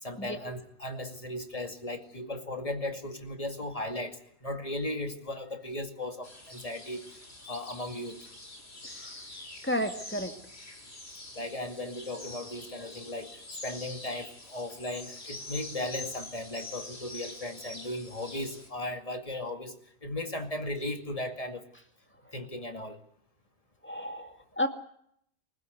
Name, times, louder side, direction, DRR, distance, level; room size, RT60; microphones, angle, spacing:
voice 1, 0.0-7.0 7.5-8.3 11.3-13.3 13.6-19.7 20.0-21.7 22.3-23.0, left 1 dB, 25° left, 6 dB, 2.3 m, -36 dB
sound 1, 6.2-18.7, left 2 dB, 45° left, 3.9 m, -45 dB
voice 2, 9.6-10.3 23.8-24.7, equal, 10° left, 5 dB, 2.2 m, -32 dB
24.5 x 15.5 x 9.4 m, 0.69 s
omnidirectional pair, 1.4 m